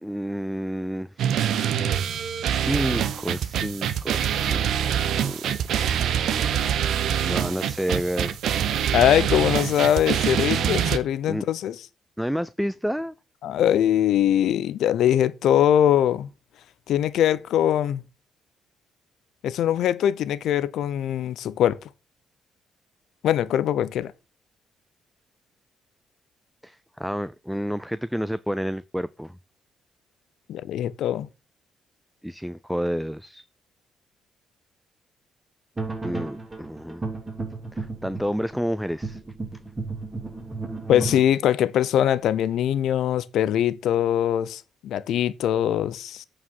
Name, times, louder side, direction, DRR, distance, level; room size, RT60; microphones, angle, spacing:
voice 1, 0.0-1.4 2.4-4.7 5.2-5.5 7.2-8.4 11.3-11.4 12.2-13.1 26.6-29.4 32.2-33.4 36.0-37.1 37.7-39.2, equal, ahead, 0.4 m, -30 dB
sound 1, 1.2-11.0, right 9 dB, 75° right, 0.9 m, -25 dB
voice 2, 8.9-11.8 13.4-16.3 16.9-18.0 19.4-21.8 23.2-24.1 30.5-31.3 40.9-46.2, left 10 dB, 75° left, 0.7 m, -22 dB
sound 2, 35.8-41.2, right 3 dB, 20° right, 3.4 m, -33 dB
8.6 x 4.9 x 5.5 m
cardioid pair, 90°, 0 cm